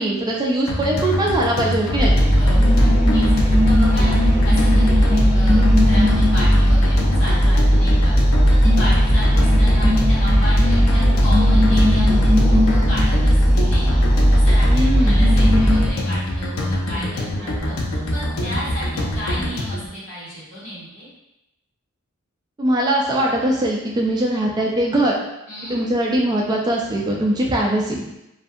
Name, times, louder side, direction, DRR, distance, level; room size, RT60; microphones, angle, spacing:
voice 1, 0.0-2.2 14.7-15.2 22.6-25.1 25.7-28.0, right 1 dB, 20° right, -2 dB, 0.3 m, -21 dB
sound 1, 0.7-19.9, left 1 dB, 85° left, 0.5 m, -25 dB
sound 2, 2.0-15.9, equal, 30° left, 0.6 m, -15 dB
voice 2, 2.3-8.1 8.5-21.1 25.5-25.8, equal, 65° left, -9 dB, 1.4 m, -33 dB
2.6 x 2.5 x 2.3 m, 0.89 s
head